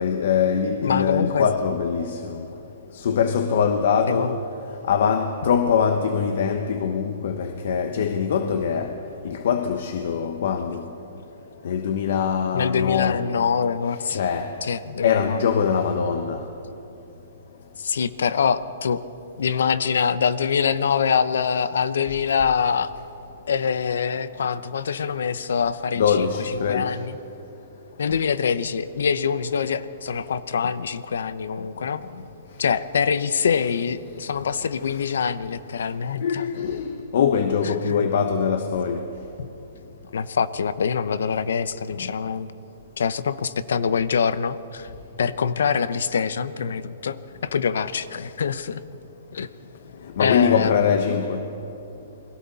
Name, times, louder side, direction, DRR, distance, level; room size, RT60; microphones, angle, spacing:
voice 1, 0.0-2.5 2.9-4.4 4.9-8.9 9.2-10.9 11.6-13.3 14.1-14.6 15.0-16.4 25.9-27.0 36.2-39.1 42.0-42.1 50.2-51.4, left 7 dB, 60° left, 1.1 m, -23 dB
voice 2, 0.8-1.5 4.1-4.4 12.5-14.2 14.6-15.4 17.8-19.0 19.4-22.9 23.5-27.2 28.0-32.0 32.6-36.5 37.6-37.9 40.1-42.5 43.0-44.9 45.2-48.8 49.3-49.5 50.2-50.9, left 6 dB, 85° left, 0.9 m, -24 dB
28.5 x 22.0 x 4.2 m
hypercardioid pair, 165°, 0 cm